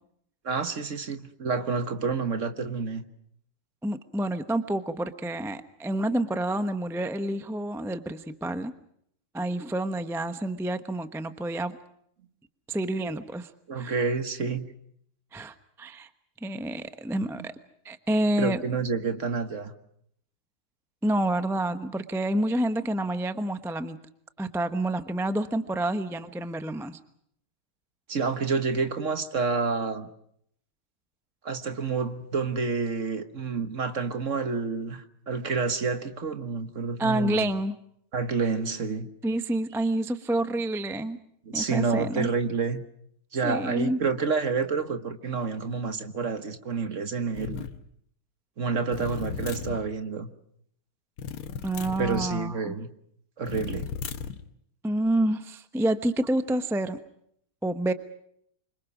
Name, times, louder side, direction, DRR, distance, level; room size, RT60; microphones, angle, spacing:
voice 1, 0.4-3.0 13.7-14.7 17.4-17.5 18.4-19.7 28.1-30.1 31.4-37.5 38.1-39.1 41.4-42.8 43.3-47.6 48.6-50.3 52.0-52.9 53.4-53.9, right 4 dB, 40° right, 9 dB, 1.4 m, -29 dB
voice 2, 3.8-8.7 9.3-11.8 12.7-13.9 15.3-16.1 16.4-17.5 17.8-18.6 21.0-24.0 24.4-27.0 37.0-37.8 39.2-41.2 41.5-42.3 43.4-44.0 51.6-52.7 54.8-57.0 57.6-57.9, right 1 dB, 5° right, 10 dB, 0.4 m, -28 dB
sound 1, 47.3-47.8 48.9-49.8 51.2-52.3 53.5-54.4, left 6 dB, 80° left, 2.1 m, -35 dB
27.5 x 25.0 x 6.1 m, 0.69 s
omnidirectional pair, 2.3 m